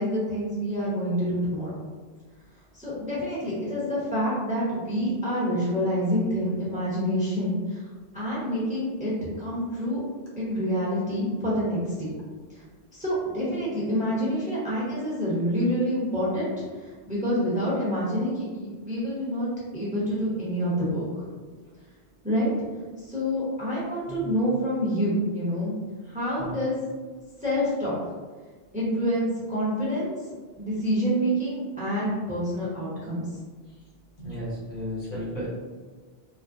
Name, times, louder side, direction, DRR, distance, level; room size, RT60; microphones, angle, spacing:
voice 1, 0.0-1.8 2.7-7.8 8.1-10.0 10.4-12.1 12.5-12.6 12.9-19.5 19.7-21.0 22.2-22.5 23.0-25.8 26.1-26.8 27.4-28.0 28.7-30.2 30.6-33.3, equal, 10° right, -8 dB, 0.8 m, -27 dB
voice 2, 34.2-35.5, equal, 60° left, -7 dB, 1.0 m, -34 dB
3.1 x 2.0 x 2.5 m, 1.4 s
omnidirectional pair, 1.0 m